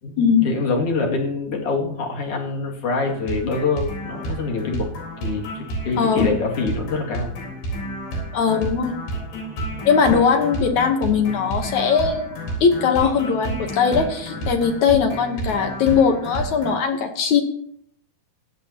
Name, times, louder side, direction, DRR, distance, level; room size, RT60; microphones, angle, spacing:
voice 1, 0.4-4.9 5.2-7.4, left 4 dB, 45° left, -1 dB, 2.8 m, -25 dB
sound 1, 3.1-16.8, right 1 dB, 90° left, 6.2 m, -31 dB
voice 2, 6.0-6.3 8.3-9.0 9.8-12.3 12.6-17.4, left 6 dB, 65° left, 5 dB, 2.0 m, -19 dB
17.0 x 12.5 x 2.9 m, 0.67 s
omnidirectional pair, 4.5 m